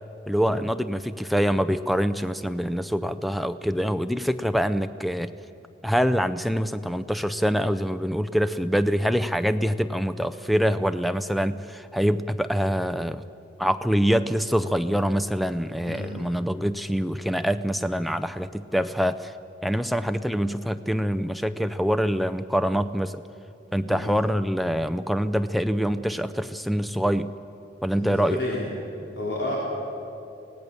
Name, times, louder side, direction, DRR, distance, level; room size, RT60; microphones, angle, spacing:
voice 1, 0.3-5.3 5.8-13.2 13.6-19.3 19.6-23.2 23.7-27.3 27.8-28.4, equal, ahead, 12 dB, 0.5 m, -25 dB
voice 2, 15.8-16.3 23.9-24.1 28.0-28.7 29.2-29.6, left 1 dB, 70° left, -5 dB, 3.7 m, -31 dB
25.0 x 17.5 x 7.0 m, 2.8 s
head